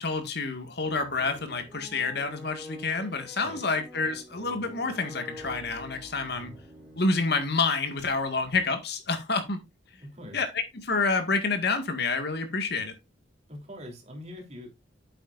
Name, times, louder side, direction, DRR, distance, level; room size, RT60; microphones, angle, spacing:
voice 1, 0.0-6.5 7.0-9.6 10.3-10.5 10.7-12.9, left 3 dB, 60° left, 1.9 m, -28 dB
sound 1, 0.8-7.7, equal, 5° left, 3.7 m, -47 dB
voice 2, 10.0-10.4 13.5-14.7, left 1 dB, 35° right, 3.3 m, -43 dB
9.0 x 8.4 x 2.5 m
head